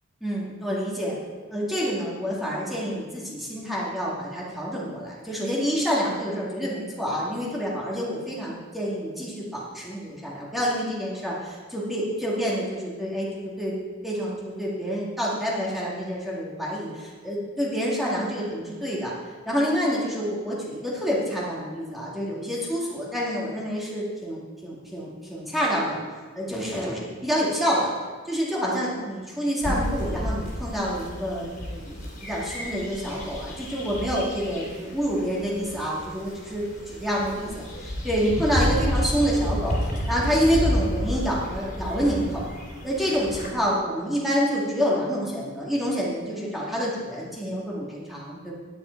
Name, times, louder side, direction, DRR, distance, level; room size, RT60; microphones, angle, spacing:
voice 1, 0.2-1.1 1.5-13.7 14.0-19.1 19.5-26.0 26.3-27.9 28.2-39.8 40.1-42.4 42.8-48.5, equal, ahead, -6 dB, 2.2 m, -27 dB
sound 1, 29.6-43.5, equal, 45° left, 3.0 m, -31 dB
10.5 x 10.0 x 4.6 m, 1.4 s
head